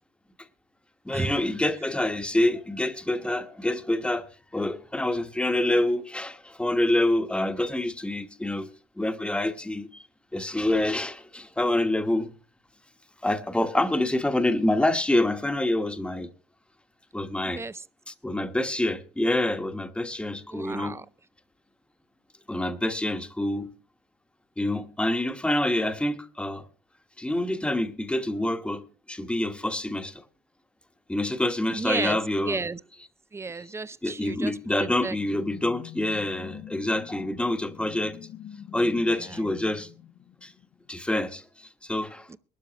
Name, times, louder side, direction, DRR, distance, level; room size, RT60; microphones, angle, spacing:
voice 1, 1.0-8.7 9.0-10.0 10.3-12.3 13.2-16.3 17.1-17.6 18.1-21.0 22.5-23.7 24.6-26.6 27.2-28.8 29.1-30.2 31.1-32.6 34.0-38.2 38.7-39.9 40.4-40.5 40.9-42.3, left 1 dB, 5° left, 1.2 m, -27 dB
voice 2, 17.4-17.8 20.5-21.1 31.7-32.2 32.4-32.8 33.3-35.2 39.2-39.4 42.3-42.4, right 4 dB, 15° right, 0.6 m, -33 dB
sound 1, 34.6-40.9, left 10 dB, 55° left, 0.9 m, -46 dB
22.5 x 12.5 x 2.9 m
cardioid pair, 110°, 17 cm